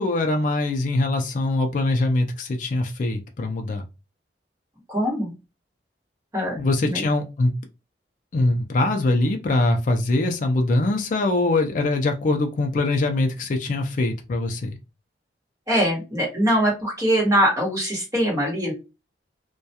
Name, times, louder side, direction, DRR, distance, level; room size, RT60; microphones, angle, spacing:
voice 1, 0.0-3.8 6.6-7.5 8.3-14.7, left 2 dB, 45° left, 4 dB, 0.4 m, -23 dB
voice 2, 4.9-5.3 6.3-6.6 6.9-7.0 15.7-18.7, equal, 20° right, -1 dB, 1.1 m, -22 dB
2.3 x 2.2 x 2.7 m, 0.27 s
head